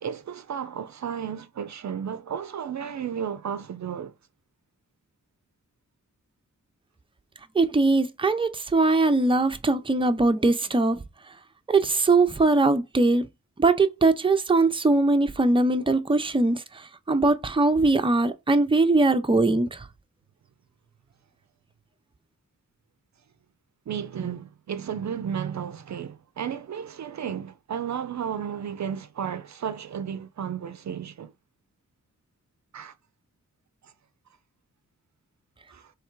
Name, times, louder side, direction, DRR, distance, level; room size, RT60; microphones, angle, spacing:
voice 1, 0.0-4.1 23.9-31.3 32.7-32.9 33.8-33.9 35.7-35.9, right 8 dB, 65° right, 0.5 m, -33 dB
voice 2, 7.5-11.0 11.7-13.3 13.6-19.9, right 3 dB, 15° right, 0.6 m, -21 dB
3.5 x 3.3 x 4.5 m
wide cardioid pair, 100°, 31 cm